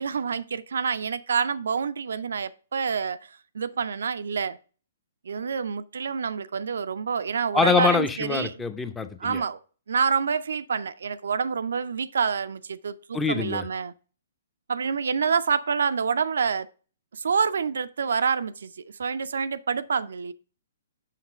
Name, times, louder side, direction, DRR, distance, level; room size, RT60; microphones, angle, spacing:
voice 1, 0.0-4.6 5.3-8.6 9.2-9.6 9.9-13.9 14.7-16.7 17.1-18.7 19.0-20.3, right 6 dB, 70° right, 0.4 m, -27 dB
voice 2, 7.5-9.4 13.1-13.7, left 5 dB, 10° left, 0.7 m, -24 dB
5.9 x 5.8 x 4.6 m
figure-of-eight pair, 125°, 0 cm